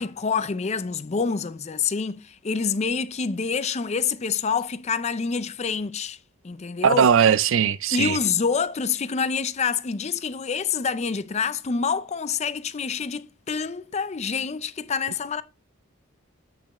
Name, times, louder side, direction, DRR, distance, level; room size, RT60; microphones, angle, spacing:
voice 1, 0.0-6.2 6.4-7.1 7.9-15.4, left 5 dB, 30° left, 0.4 m, -27 dB
voice 2, 6.8-8.2, right 7 dB, 60° right, 0.4 m, -19 dB
8.7 x 6.1 x 3.0 m
head